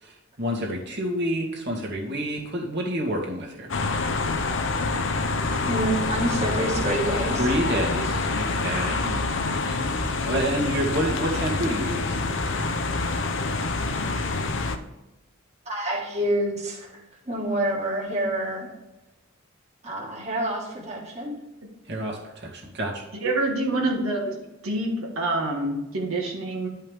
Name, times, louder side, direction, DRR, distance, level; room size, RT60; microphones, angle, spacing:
voice 1, 0.0-3.7 7.3-9.9 10.2-12.2 21.9-23.0, equal, 55° right, 0 dB, 2.0 m, -28 dB
sound 1, 3.7-14.8, left 3 dB, 60° left, 0.7 m, -26 dB
voice 2, 5.6-7.4 15.6-18.7 19.8-21.3, right 1 dB, 30° right, -2 dB, 1.9 m, -27 dB
voice 3, 23.2-24.3 24.6-26.7, right 2 dB, 85° right, -1 dB, 1.8 m, -26 dB
11.0 x 5.5 x 3.5 m, 1.0 s
head